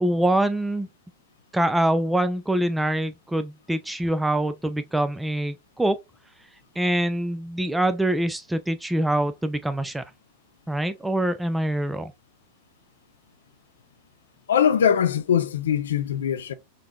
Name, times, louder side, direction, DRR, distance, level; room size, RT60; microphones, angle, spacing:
voice 1, 0.0-0.9 1.5-6.0 6.8-10.0 10.7-12.1, right 1 dB, 5° right, 0.3 m, -24 dB
voice 2, 14.5-16.5, left 8 dB, 65° left, 0.4 m, -22 dB
3.8 x 2.8 x 2.2 m
figure-of-eight pair, 90°, 0 cm